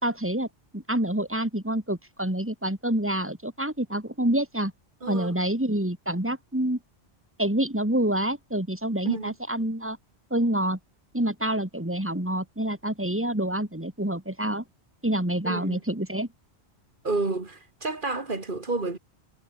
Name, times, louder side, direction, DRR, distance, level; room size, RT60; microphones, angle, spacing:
voice 1, 0.0-0.5 0.7-4.7 5.1-6.8 7.4-10.0 10.3-10.8 11.1-14.6 15.0-16.3, right 1 dB, 10° right, 3.3 m, -27 dB
voice 2, 5.0-5.3 9.0-9.3 15.5-15.8 17.0-19.0, right 3 dB, 50° right, 2.5 m, -30 dB
omnidirectional pair, 1.1 m